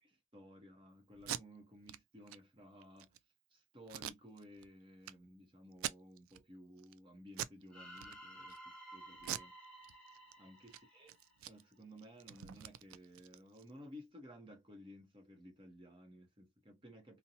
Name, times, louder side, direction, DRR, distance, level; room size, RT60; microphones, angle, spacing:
voice 1, 0.0-3.1 3.5-9.5 10.4-11.2 11.5-17.2, equal, 25° right, 0.8 m, -56 dB
Packing tape duct tape, 1.1-1.4 1.9-2.0 2.3-2.4 2.8-3.2 3.9-4.7 5.0-5.1 5.7-6.4 6.8-7.0 7.3-7.6 7.9-8.6 9.2-10.3 10.6-10.8 11.1-13.7, right 11 dB, 85° right, 0.3 m, -44 dB
sound 1, 7.7-11.8, right 1 dB, 5° left, 1.1 m, -54 dB
2.7 x 2.2 x 2.7 m
head